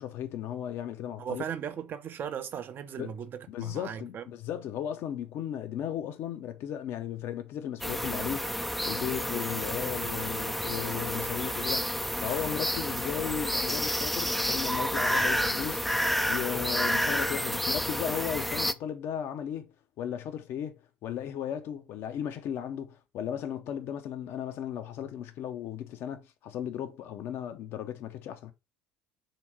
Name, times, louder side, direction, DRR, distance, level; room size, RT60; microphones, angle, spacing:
voice 1, 0.0-1.5 3.0-3.1 3.5-8.5 8.9-15.8 16.3-28.5, left 10 dB, 55° left, 0.7 m, -36 dB
voice 2, 1.2-4.2 10.7-11.0, right 8 dB, 40° right, 0.6 m, -38 dB
sound 1, 7.8-18.7, equal, ahead, 0.4 m, -30 dB
3.5 x 2.9 x 4.6 m
figure-of-eight pair, 60°, 5 cm